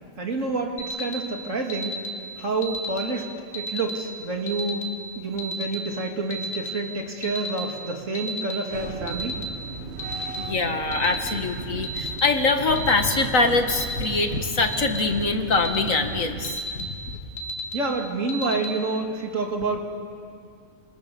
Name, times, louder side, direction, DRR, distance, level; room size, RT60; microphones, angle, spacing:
voice 1, 0.2-2.0 2.4-3.3 3.5-4.8 5.1-9.4 17.7-19.8, right 3 dB, 70° right, 2 dB, 3.1 m, -28 dB
Alarm, 0.8-1.1 1.7-2.1 2.6-3.0 3.5-3.9 4.5-4.8 5.4-5.7 6.3-6.7 7.2-7.6 8.1-8.5 9.1-9.4 10.0-10.3 10.9-11.3 11.8-12.2 12.8-13.1 13.7-14.0 14.6-15.0 15.5-15.9 16.4-16.8 17.4-17.7 18.3-18.6, left 1 dB, 55° left, 2.9 m, -33 dB
sound 1, 8.7-16.6, right 5 dB, 55° right, 1.5 m, -37 dB
voice 2, 10.4-16.9, left 3 dB, 85° left, 6 dB, 2.3 m, -23 dB
27.5 x 27.5 x 7.1 m, 2.3 s
omnidirectional pair, 1.4 m